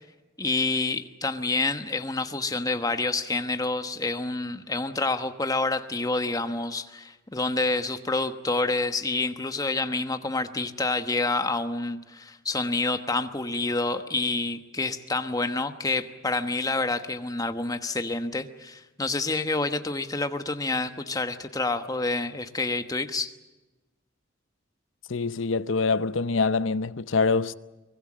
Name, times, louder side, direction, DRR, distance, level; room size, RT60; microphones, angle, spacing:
voice 1, 0.4-23.3, left 3 dB, 20° left, 1.1 m, -28 dB
voice 2, 25.1-27.5, left 4 dB, 75° left, 0.7 m, -25 dB
24.0 x 21.5 x 7.5 m
head